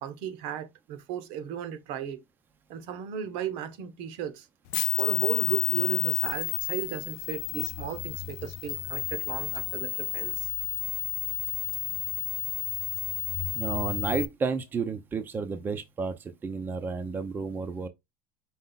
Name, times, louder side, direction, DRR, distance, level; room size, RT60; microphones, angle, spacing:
voice 1, 0.0-2.2 2.7-4.5 5.0-10.5, right 9 dB, 60° right, 0.8 m, -35 dB
sound 1, 4.7-14.3, left 16 dB, 70° left, 0.6 m, -31 dB
voice 2, 13.5-17.9, right 5 dB, 15° right, 0.5 m, -31 dB
5.4 x 2.4 x 3.8 m
cardioid pair, 155°, 12 cm